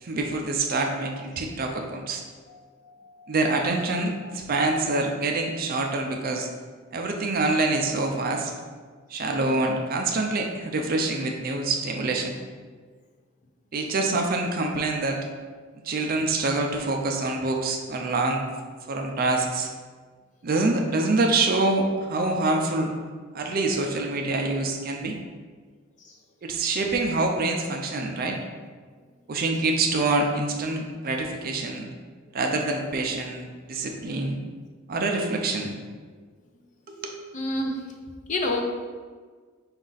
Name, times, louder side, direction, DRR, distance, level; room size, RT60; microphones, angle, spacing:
voice 1, 0.0-2.2 3.3-6.5 6.9-8.5 9.1-12.3 13.7-15.2 15.8-18.4 18.9-19.7 20.4-22.9 23.3-25.2 26.4-28.4 29.3-31.9 32.3-34.4 34.9-35.7 36.9-37.2, right 2 dB, 45° right, 3 dB, 0.4 m, -26 dB
voice 2, 2.5-3.3 4.2-4.3 4.8-4.9 26.0-26.1 37.3-37.8 38.3-38.6, left 1 dB, 35° left, 2 dB, 0.5 m, -30 dB
5.2 x 2.4 x 3.9 m, 1.5 s
head